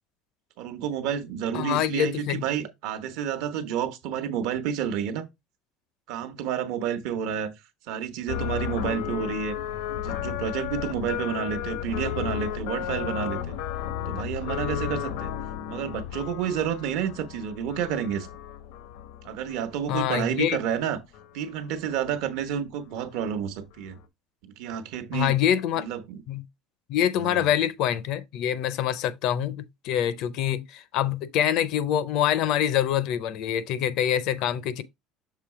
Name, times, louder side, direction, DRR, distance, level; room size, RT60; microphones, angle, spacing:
voice 1, 0.6-5.3 6.1-7.5 7.9-9.6 9.9-13.6 14.1-15.3 15.7-18.3 19.2-21.0 21.3-24.0 24.4-25.3 25.7-26.2 27.2-27.6, right 8 dB, 65° right, 1.0 m, -30 dB
voice 2, 1.5-2.4 19.9-20.6 25.1-25.9 26.3-26.4 26.9-34.8, left 10 dB, 50° left, 0.5 m, -25 dB
sound 1, 8.3-20.8 21.1-21.8 22.1-22.5 23.0-23.1 23.3-23.6 23.9-24.0, left 10 dB, 90° left, 0.9 m, -34 dB
6.7 x 3.1 x 4.7 m
cardioid pair, 175°, 0 cm